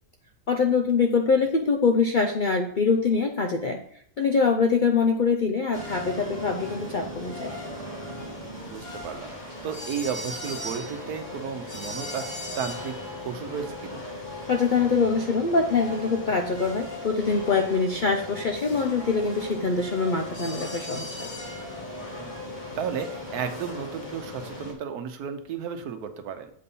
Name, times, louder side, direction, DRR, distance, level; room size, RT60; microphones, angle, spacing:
voice 1, 0.5-3.8 4.2-7.5 14.5-21.3, left 4 dB, 65° left, 4 dB, 0.5 m, -24 dB
sound 1, 5.7-24.7, left 1 dB, 30° left, 1.9 m, -37 dB
voice 2, 8.7-9.4 9.6-14.0 22.2-22.4 22.7-26.5, right 7 dB, 80° right, 8 dB, 1.3 m, -33 dB
7.7 x 4.2 x 5.4 m, 0.63 s
omnidirectional pair, 1.6 m